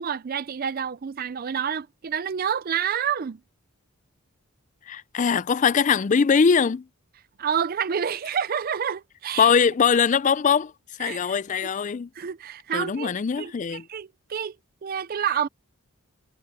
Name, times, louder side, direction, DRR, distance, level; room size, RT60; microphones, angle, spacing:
voice 1, 0.0-3.4 7.4-9.5 11.0-11.2 12.2-13.1 13.4-14.6 14.8-15.5, right 8 dB, 40° right, 0.4 m, -28 dB
voice 2, 4.9-6.9 9.4-10.7 11.0-12.1 12.7-13.9, left 6 dB, 35° left, 0.3 m, -21 dB
head